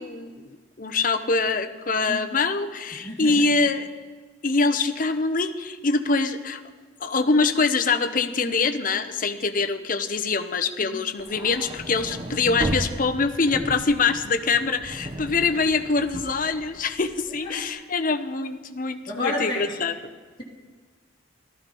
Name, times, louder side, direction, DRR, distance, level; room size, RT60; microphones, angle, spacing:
voice 1, 0.0-3.9 4.4-6.6 7.0-20.0, left 4 dB, 40° left, 8 dB, 0.8 m, -24 dB
voice 2, 2.9-3.4 10.8-11.0 17.4-17.6 19.1-19.8, left 2 dB, 20° left, -4 dB, 2.4 m, -31 dB
sound 1, 11.2-17.5, right 1 dB, 25° right, 1.1 m, -35 dB
15.5 x 13.0 x 5.4 m, 1.5 s
head